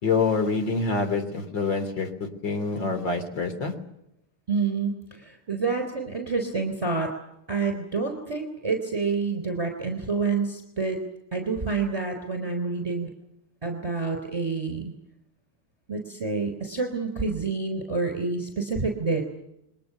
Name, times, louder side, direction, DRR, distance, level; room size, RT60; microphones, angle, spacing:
voice 1, 0.0-3.7, left 4 dB, 55° left, 7 dB, 3.9 m, -26 dB
voice 2, 4.5-7.1 7.5-11.0 11.3-13.1 13.6-14.9 15.9-19.2, right 4 dB, 15° right, 3 dB, 3.9 m, -28 dB
29.5 x 22.5 x 7.0 m, 0.83 s
omnidirectional pair, 2.4 m